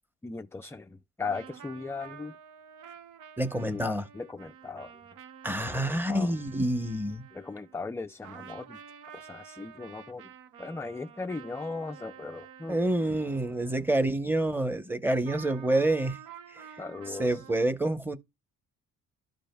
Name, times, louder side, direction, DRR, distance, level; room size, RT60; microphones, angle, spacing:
voice 1, 0.2-2.4 3.6-4.9 5.7-6.3 7.3-8.8 9.1-10.3 10.6-12.8 16.8-17.4, left 4 dB, 10° left, 0.4 m, -38 dB
sound 1, 1.2-8.0 8.2-14.2 15.2-17.6, right 8 dB, 85° right, 0.9 m, -49 dB
voice 2, 3.4-4.0 5.4-7.2 12.7-16.2 16.5-16.7 17.1-18.2, right 1 dB, 5° right, 0.9 m, -28 dB
12.5 x 5.0 x 2.3 m
cardioid pair, 90°, 30 cm